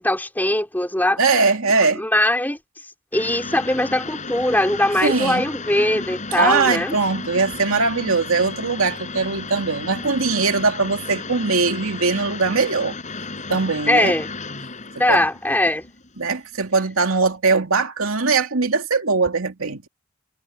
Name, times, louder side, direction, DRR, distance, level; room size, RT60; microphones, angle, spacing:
voice 1, 0.0-1.2 1.7-2.6 3.1-6.9 13.9-14.3 15.0-15.9, left 1 dB, 10° left, 4.0 m, -21 dB
voice 2, 1.2-2.0 5.0-5.4 6.4-13.0 13.5-14.1 15.1-15.3 16.2-19.9, right 4 dB, 85° right, 2.6 m, -21 dB
sound 1, 3.1-16.6, left 4 dB, 35° left, 6.5 m, -34 dB
head